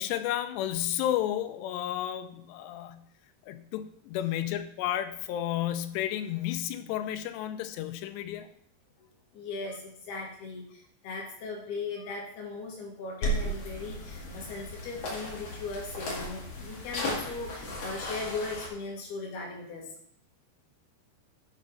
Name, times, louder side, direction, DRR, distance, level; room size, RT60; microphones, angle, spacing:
voice 1, 0.0-3.0 3.5-8.5, left 12 dB, 85° left, 9 dB, 2.9 m, -32 dB
voice 2, 9.0-19.9, left 3 dB, 70° left, -1 dB, 3.7 m, -38 dB
sound 1, 13.2-18.7, equal, 45° left, 2.5 m, -35 dB
9.0 x 5.4 x 5.7 m, 0.66 s
omnidirectional pair, 4.9 m